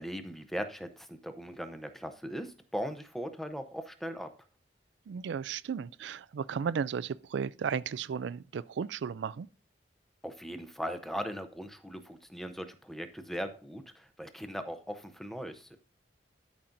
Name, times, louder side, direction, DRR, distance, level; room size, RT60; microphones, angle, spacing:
voice 1, 0.0-4.3 10.2-15.8, equal, ahead, 0.6 m, -39 dB
voice 2, 5.1-9.5, right 7 dB, 85° right, 0.3 m, -34 dB
12.5 x 5.8 x 2.6 m
head